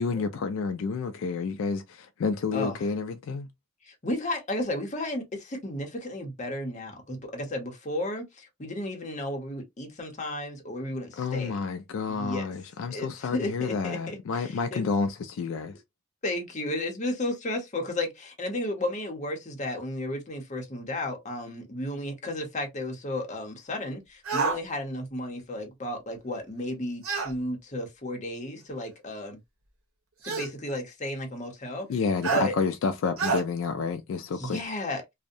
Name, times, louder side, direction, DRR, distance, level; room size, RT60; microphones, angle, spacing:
voice 1, 0.0-3.5 11.2-15.7 31.9-34.6, left 4 dB, 65° left, 0.3 m, -29 dB
voice 2, 3.8-11.6 12.1-12.5 12.9-14.8 16.2-29.4 30.2-31.9 32.3-32.5 34.3-35.0, left 1 dB, 35° left, 0.7 m, -33 dB
sound 1, 24.3-24.6 27.0-27.3 28.6-28.7 30.2-30.5 32.2-32.5 33.2-33.4, right 4 dB, 80° right, 0.8 m, -27 dB
2.6 x 2.1 x 2.5 m
head